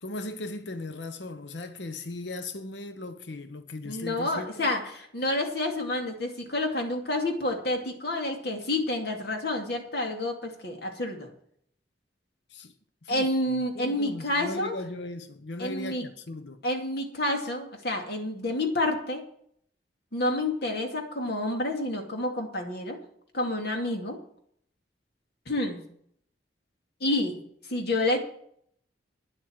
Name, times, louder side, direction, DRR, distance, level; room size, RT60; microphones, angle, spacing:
voice 1, 0.0-4.7 12.5-12.7 13.0-13.3 13.7-16.6, left 2 dB, 85° left, 0.9 m, -38 dB
voice 2, 3.8-11.3 13.1-14.8 15.6-16.0 16.6-19.2 20.1-23.0 23.3-24.2 25.5-25.8 27.0-27.4 27.7-28.2, left 1 dB, 65° left, 2.5 m, -29 dB
10.0 x 7.6 x 8.8 m
head